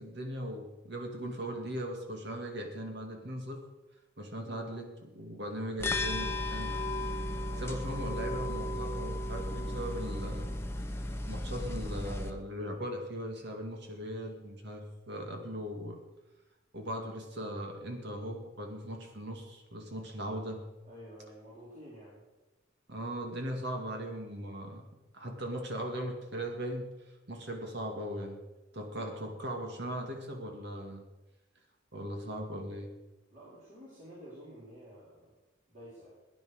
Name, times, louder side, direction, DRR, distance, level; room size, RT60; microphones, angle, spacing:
voice 1, 0.0-3.6 4.2-6.7 7.6-10.5 11.3-16.0 16.7-20.6 22.9-24.8 25.1-26.9 27.3-28.4 28.7-31.0 31.9-32.9, equal, 60° right, 3 dB, 2.3 m, -39 dB
sound 1, 5.8-12.3, left 1 dB, 15° left, 1.0 m, -35 dB
voice 2, 20.8-22.2 29.0-29.1 33.3-35.3 35.7-36.1, equal, 40° right, -8 dB, 4.7 m, -50 dB
16.5 x 10.5 x 6.4 m, 1.1 s
head